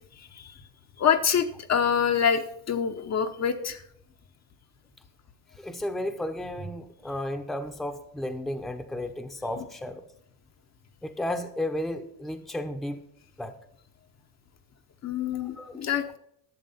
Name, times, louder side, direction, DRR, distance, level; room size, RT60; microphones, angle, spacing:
voice 1, 0.2-0.5 1.0-3.8 9.6-9.7 15.0-16.2, left 7 dB, 35° left, 6 dB, 0.9 m, -26 dB
voice 2, 5.6-10.0 11.0-13.0 13.4-13.5 15.6-15.8, left 1 dB, ahead, 8 dB, 0.9 m, -33 dB
12.0 x 7.3 x 5.7 m, 0.71 s
supercardioid pair, 105°, 47 cm